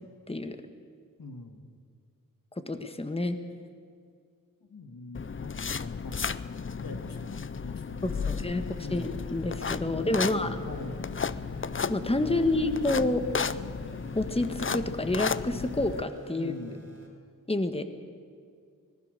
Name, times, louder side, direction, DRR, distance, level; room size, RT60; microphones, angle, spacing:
voice 1, 0.3-0.6 2.6-3.4 8.0-8.6 8.9-10.5 11.9-13.2 14.1-16.5 17.5-17.8, left 2 dB, 15° left, 8 dB, 1.5 m, -28 dB
voice 2, 1.2-1.6 4.6-6.4 6.8-9.1 9.8-11.3 12.2-12.6 16.3-16.8, left 2 dB, 85° left, 6 dB, 2.1 m, -43 dB
sound 1, 5.1-16.0, left 5 dB, 35° left, 0.6 m, -34 dB
sound 2, 8.0-17.1, right 3 dB, 35° right, 5.4 m, -49 dB
25.0 x 19.0 x 6.7 m, 2.3 s
wide cardioid pair, 75°, 33 cm